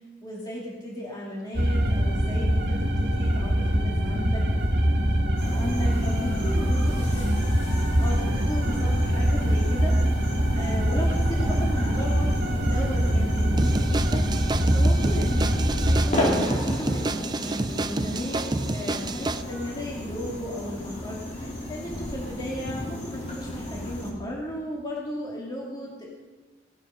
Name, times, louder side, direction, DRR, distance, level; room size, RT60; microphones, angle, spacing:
voice 1, 0.2-4.4 5.4-7.1 8.0-26.2, equal, 25° left, -4 dB, 2.2 m, -36 dB
sound 1, 1.5-16.1, equal, 60° right, 1.8 m, -23 dB
sound 2, 5.4-24.1, left 1 dB, 40° left, 3.2 m, -34 dB
sound 3, 13.6-19.4, right 2 dB, 20° right, 0.5 m, -29 dB
17.5 x 9.0 x 5.6 m, 1.2 s
head